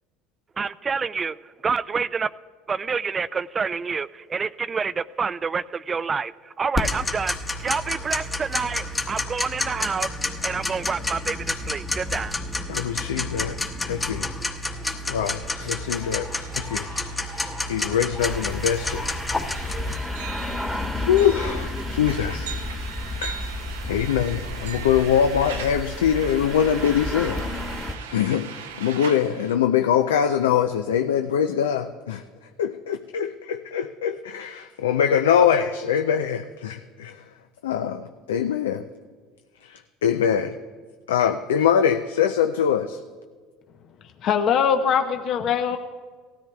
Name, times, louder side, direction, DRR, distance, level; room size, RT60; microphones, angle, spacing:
voice 1, 0.6-1.4 1.6-2.3 2.7-10.1 10.4-12.3, right 5 dB, 30° right, 17 dB, 0.3 m, -28 dB
Tick-tock, 6.7-20.0, left 2 dB, 20° left, 1.1 m, -29 dB
voice 2, 12.7-13.6 13.8-14.3 15.1-16.3 16.6-16.9 17.3-19.0 21.1-22.5 23.2-27.4 28.1-28.5 28.8-32.2 32.6-37.2 37.6-38.8 39.6-40.5 41.1-43.0, left 8 dB, 85° left, 7 dB, 0.4 m, -23 dB
sound 1, 14.5-14.6 14.8-29.6, right 7 dB, 90° right, 0.6 m, -40 dB
sound 2, 18.2-28.0, left 1 dB, ahead, 1.2 m, -32 dB
voice 3, 44.2-45.8, left 7 dB, 55° left, 6 dB, 0.7 m, -21 dB
18.5 x 13.0 x 2.3 m, 1.5 s
hypercardioid pair, 80°, 0 cm